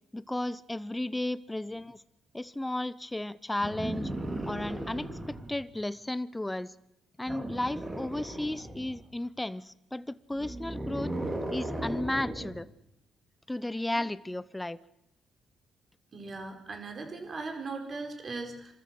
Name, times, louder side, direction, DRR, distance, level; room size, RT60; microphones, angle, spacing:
voice 1, 0.1-2.0 2.3-4.1 4.5-6.7 7.2-11.1 11.5-12.7 13.5-14.8, left 1 dB, 10° left, 16 dB, 0.7 m, -34 dB
sound 1, 3.6-5.6 7.3-9.0 10.3-12.6 13.9-14.0, right 1 dB, 20° right, 4.0 m, -36 dB
voice 2, 16.1-18.7, right 3 dB, 40° right, 4 dB, 4.7 m, -38 dB
25.5 x 13.5 x 7.8 m, 0.83 s
cardioid pair, 90°, 0 cm